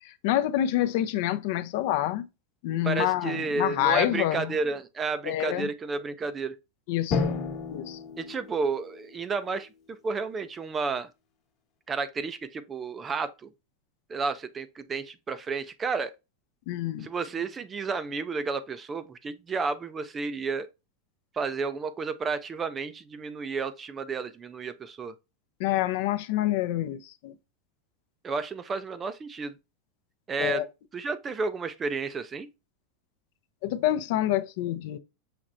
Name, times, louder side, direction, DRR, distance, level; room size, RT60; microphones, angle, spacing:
voice 1, 0.0-2.3 2.6-4.5 5.2-5.7 6.9-7.3 7.7-8.0 16.7-17.1 25.6-27.3 30.4-30.7 33.6-35.0, left 13 dB, 55° left, 0.5 m, -27 dB
voice 2, 2.8-6.5 8.2-9.7 10.0-11.1 11.9-13.5 14.1-16.1 17.0-20.7 21.4-25.1 28.2-29.6 30.3-30.6 30.9-32.5, right 4 dB, 15° right, 0.4 m, -31 dB
Drum, 7.1-9.6, left 4 dB, 35° left, 1.1 m, -32 dB
5.9 x 3.1 x 2.5 m
supercardioid pair, 150°, 0 cm